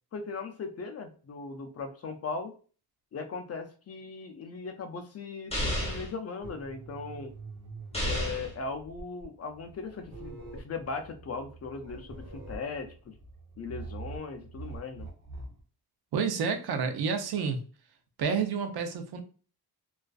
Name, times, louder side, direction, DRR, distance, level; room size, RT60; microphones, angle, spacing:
voice 1, 0.1-2.5 3.1-7.3 8.0-13.1 13.6-15.1, left 4 dB, 40° left, 6 dB, 0.4 m, -38 dB
sound 1, 5.5-6.1 7.9-8.5, equal, 15° left, 1.0 m, -31 dB
sound 2, 6.4-15.6, right 3 dB, 60° right, 0.9 m, -45 dB
voice 2, 16.1-17.6 18.2-19.2, right 6 dB, 75° right, 6 dB, 0.6 m, -29 dB
2.4 x 2.3 x 2.3 m, 0.38 s
wide cardioid pair, 130°, 38 cm